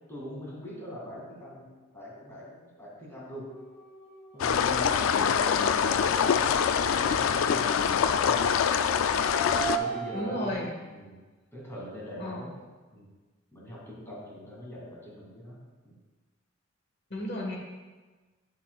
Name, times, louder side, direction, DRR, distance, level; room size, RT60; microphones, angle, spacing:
voice 1, 0.1-3.5 4.3-8.5 9.7-10.6 10.9-11.2 11.5-12.5 12.9-13.1 13.5-16.0, left 1 dB, 15° left, -5 dB, 2.2 m, -43 dB
sound 1, 3.5-6.5 8.2-10.5, right 5 dB, 40° left, 2.3 m, -38 dB
sound 2, 4.4-9.8, left 7 dB, 85° left, 0.3 m, -24 dB
voice 2, 10.1-10.7 12.2-12.5 17.1-17.6, left 1 dB, 55° left, 0 dB, 1.4 m, -33 dB
8.6 x 7.6 x 2.3 m, 1.3 s
head